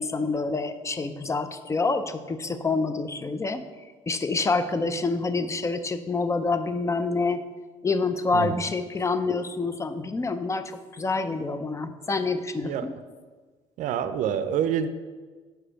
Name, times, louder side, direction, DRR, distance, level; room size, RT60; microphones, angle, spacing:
voice 1, 0.0-3.6 4.1-7.4 7.8-12.9, left 3 dB, 20° left, 10 dB, 0.5 m, -27 dB
voice 2, 13.8-14.9, right 9 dB, 65° right, 11 dB, 0.5 m, -26 dB
4.9 x 4.5 x 5.7 m, 1.4 s
supercardioid pair, 65°, 14 cm